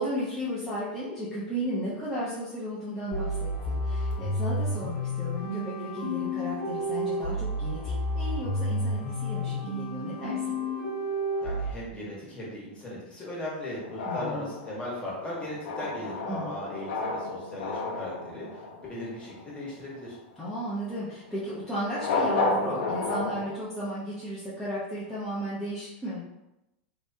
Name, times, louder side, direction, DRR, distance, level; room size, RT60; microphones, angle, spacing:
voice 1, 0.0-10.6 14.1-14.6 16.3-16.5 20.4-26.2, equal, ahead, -11 dB, 0.8 m, -34 dB
sound 1, 3.1-11.7, equal, 55° left, 1.1 m, -30 dB
voice 2, 11.4-20.2, left 1 dB, 20° left, -5 dB, 1.3 m, -38 dB
sound 2, 13.8-19.6 21.9-23.6, left 3 dB, 75° left, 0.6 m, -32 dB
3.4 x 3.1 x 2.7 m, 0.93 s
supercardioid pair, 135°, 6 cm